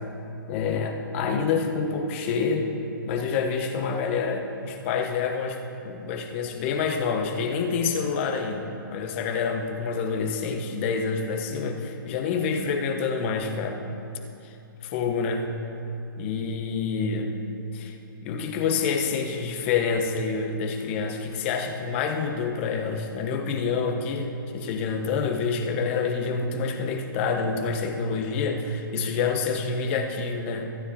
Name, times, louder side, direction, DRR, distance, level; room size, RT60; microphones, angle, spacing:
voice 1, 0.5-2.7 3.1-5.6 5.8-13.8 14.4-14.6 14.8-15.6 16.2-17.3 17.8-17.9 18.2-30.8, left 5 dB, 35° left, 3 dB, 1.0 m, -27 dB
15.0 x 9.5 x 2.8 m, 2.9 s
hypercardioid pair, 150°, 12 cm